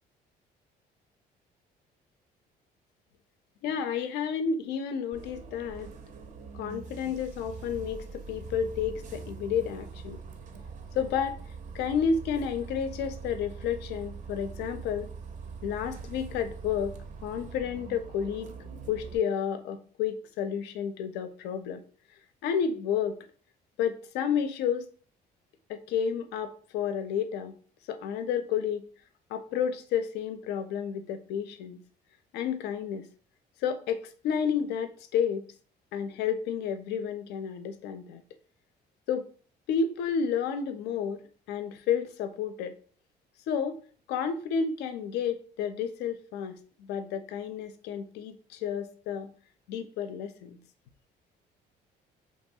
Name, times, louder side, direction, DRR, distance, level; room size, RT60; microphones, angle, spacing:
voice 1, 3.6-5.9 6.5-10.2 10.9-11.4 11.7-15.1 15.6-17.0 17.2-18.5 18.9-21.8 22.4-23.2 23.8-24.9 25.7-27.5 27.9-28.9 29.3-31.8 32.3-33.1 33.6-35.4 35.9-38.2 39.1-39.3 39.7-41.2 41.5-42.7 43.5-43.8 44.1-49.3 49.7-50.6, left 7 dB, 80° left, 9 dB, 0.4 m, -31 dB
Bus, 5.1-19.2, right 5 dB, 50° right, 0.4 m, -43 dB
2.8 x 2.3 x 2.7 m, 0.43 s
cardioid pair, 110°, 17 cm